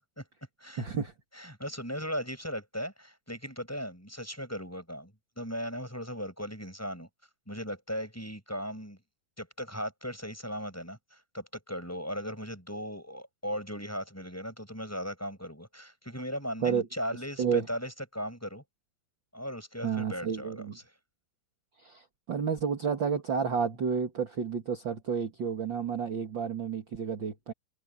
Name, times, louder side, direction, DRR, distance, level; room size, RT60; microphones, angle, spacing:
voice 1, 0.8-1.1 16.6-16.9 17.4-17.7 19.8-20.8 21.8-27.5, right 6 dB, 40° right, 1.8 m, -31 dB
voice 2, 1.3-7.1 7.5-9.0 9.4-18.6 19.3-20.7, equal, 5° left, 6.1 m, -37 dB
omnidirectional pair, 4.9 m